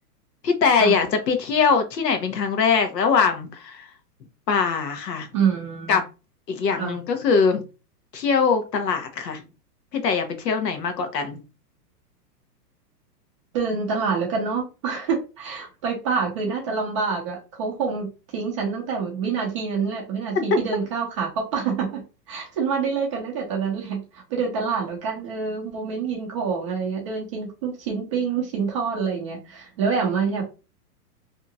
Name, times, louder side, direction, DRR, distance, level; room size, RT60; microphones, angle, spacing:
voice 1, 0.4-3.9 4.5-5.3 5.9-6.0 6.5-7.6 8.1-9.4 9.9-11.4 20.5-20.6, left 5 dB, 90° left, 6 dB, 0.9 m, -22 dB
voice 2, 5.3-6.0 6.7-7.0 13.5-22.0 22.3-30.4, right 5 dB, 20° right, 0 dB, 0.4 m, -26 dB
2.8 x 2.3 x 2.6 m, 0.30 s
hypercardioid pair, 140°, 48 cm